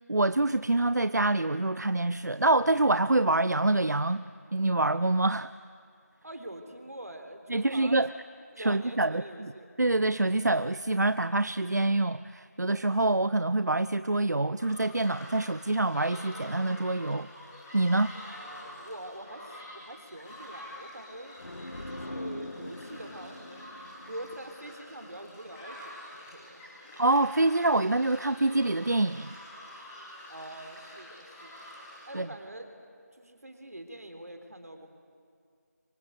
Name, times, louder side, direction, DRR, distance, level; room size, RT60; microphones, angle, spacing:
voice 1, 0.1-4.3 4.5-5.5 7.5-8.1 8.6-9.5 9.8-17.3 17.7-18.1 27.0-29.3 32.1-32.3, right 2 dB, 90° right, 14 dB, 0.6 m, -26 dB
voice 2, 6.2-8.2 8.5-9.8 18.2-21.4 21.9-23.7 24.1-26.9 30.3-31.7 32.1-32.7 33.1-34.9, right 1 dB, 65° right, 6 dB, 3.8 m, -45 dB
sound 1, 14.6-32.1, left 1 dB, 10° left, 3.1 m, -47 dB
sound 2, 21.4-25.1, left 1 dB, 75° left, 1.9 m, -42 dB
28.0 x 24.5 x 8.1 m, 2.3 s
figure-of-eight pair, 175°, 9 cm